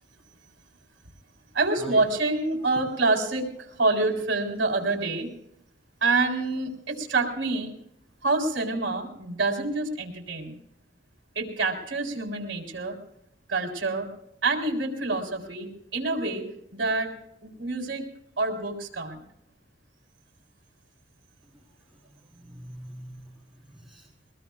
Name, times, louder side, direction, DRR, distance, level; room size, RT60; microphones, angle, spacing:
voice 1, 1.5-5.3 6.0-7.7 8.2-10.6 11.3-13.0 13.5-14.1 14.4-17.1 17.4-18.0 18.4-19.2, right 3 dB, 70° right, 2 dB, 3.7 m, -27 dB
voice 2, 22.3-24.1, equal, ahead, -5 dB, 4.2 m, -43 dB
22.0 x 20.0 x 2.4 m, 0.76 s
head